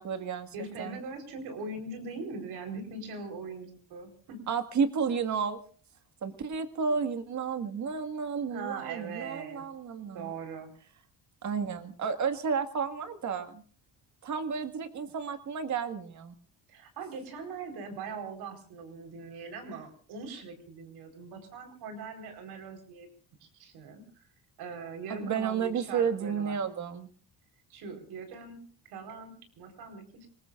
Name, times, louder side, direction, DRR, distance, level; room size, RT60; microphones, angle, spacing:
voice 1, 0.0-1.0 4.5-5.6 6.2-10.3 11.4-13.6 14.2-16.3 25.1-27.1, right 6 dB, 50° right, 9 dB, 1.9 m, -32 dB
voice 2, 0.5-4.5 8.5-9.6 10.1-10.7 16.7-23.1 23.4-24.3 24.6-26.6 27.7-28.6 28.9-30.3, right 4 dB, 90° right, 5 dB, 4.4 m, -41 dB
26.5 x 20.0 x 2.5 m, 0.41 s
cardioid pair, 120°, 37 cm